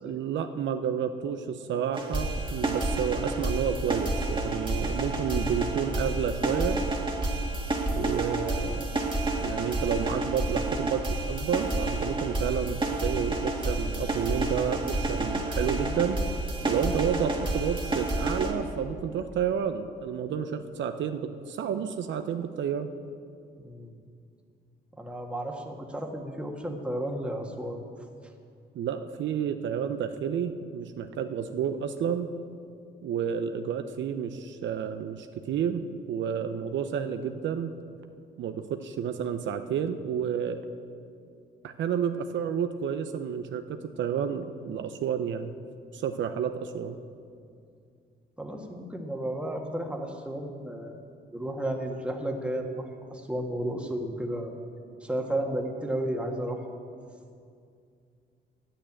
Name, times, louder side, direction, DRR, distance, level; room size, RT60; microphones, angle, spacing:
voice 1, 0.0-6.8 7.9-9.0 9.4-16.2 16.6-22.9 28.7-32.3 33.0-35.8 36.1-37.7 38.4-40.6 41.6-45.5 45.9-47.0, right 8 dB, 70° right, 8 dB, 0.7 m, -30 dB
sound 1, 1.9-18.5, right 2 dB, 25° right, 1.8 m, -29 dB
voice 2, 23.6-23.9 25.0-27.8 48.4-51.0 51.3-54.5 55.0-56.6, right 1 dB, 5° right, 1 dB, 1.6 m, -33 dB
10.0 x 8.7 x 8.8 m, 2.4 s
cardioid pair, 90°, 20 cm